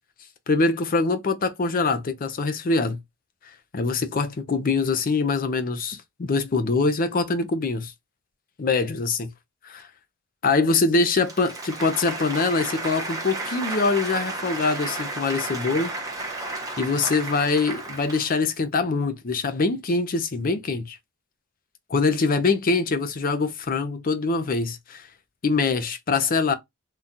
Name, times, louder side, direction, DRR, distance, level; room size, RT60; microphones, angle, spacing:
voice 1, 0.5-3.0 3.7-7.9 8.6-9.3 9.6-9.9 10.4-15.9 16.8-21.0 21.9-25.0 25.4-26.5, left 3 dB, 40° left, 0.5 m, -24 dB
Applause, 11.1-18.5, right 2 dB, 15° right, 0.9 m, -33 dB
3.6 x 2.2 x 2.7 m
head